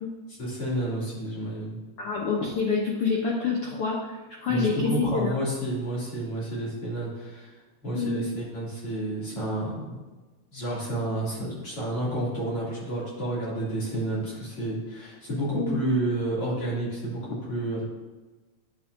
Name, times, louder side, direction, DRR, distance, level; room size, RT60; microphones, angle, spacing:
voice 1, 0.3-1.8 4.5-7.5 7.8-10.0 10.5-17.8, right 1 dB, 45° left, -7 dB, 3.5 m, -30 dB
voice 2, 2.0-5.4 7.9-8.2 15.5-15.8, left 4 dB, 75° left, -2 dB, 1.3 m, -27 dB
9.7 x 7.2 x 2.6 m, 1.2 s
omnidirectional pair, 3.8 m